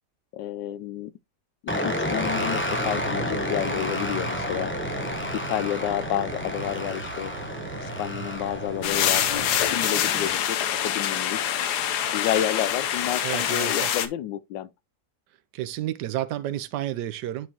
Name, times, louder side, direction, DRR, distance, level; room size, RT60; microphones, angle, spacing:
voice 1, 0.3-1.1 1.6-4.7 5.3-7.3 7.8-11.4 12.1-14.7, left 11 dB, 90° left, 1.3 m, -30 dB
sound 1, 1.7-10.4, left 1 dB, 10° left, 0.6 m, -31 dB
sound 2, 2.2-9.7, right 6 dB, 45° right, 1.1 m, -39 dB
sound 3, 8.8-14.1, left 10 dB, 70° left, 1.2 m, -25 dB
voice 2, 13.2-13.9 15.5-17.5, right 13 dB, 75° right, 1.1 m, -31 dB
10.0 x 4.4 x 2.8 m
omnidirectional pair, 1.9 m